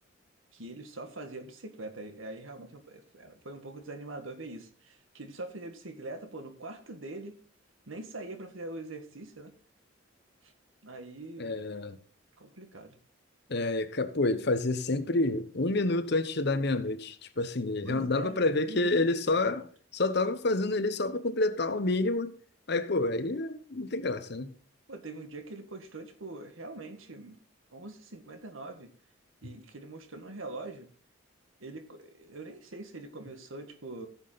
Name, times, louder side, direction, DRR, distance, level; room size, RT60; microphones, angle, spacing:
voice 1, 0.5-7.4 7.9-9.5 10.4-10.5 10.8-11.6 12.4-13.0 17.8-19.4 24.9-27.4 27.7-28.9 29.4-30.9 31.6-34.1, right 2 dB, 80° right, 1.7 m, -43 dB
voice 2, 11.4-12.0 13.5-19.7 19.9-22.3 22.7-24.5, left 2 dB, 55° left, 0.9 m, -28 dB
15.0 x 7.3 x 4.0 m
head